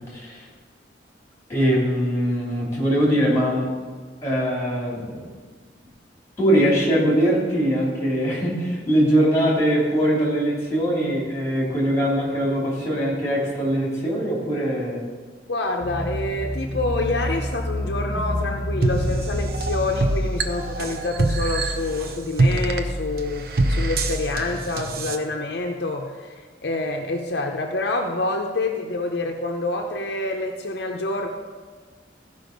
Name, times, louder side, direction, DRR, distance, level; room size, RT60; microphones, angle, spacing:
voice 1, 0.1-0.4 1.5-3.7 4.2-5.3 6.4-15.1, equal, 15° left, -4 dB, 3.1 m, -22 dB
voice 2, 15.5-31.3, left 2 dB, 65° left, 2 dB, 0.7 m, -27 dB
sound 1, 15.8-20.0, left 1 dB, 15° right, 2.6 m, -28 dB
sound 2, 18.8-25.2, right 2 dB, 55° right, 0.7 m, -25 dB
14.5 x 5.4 x 5.3 m, 1.5 s
head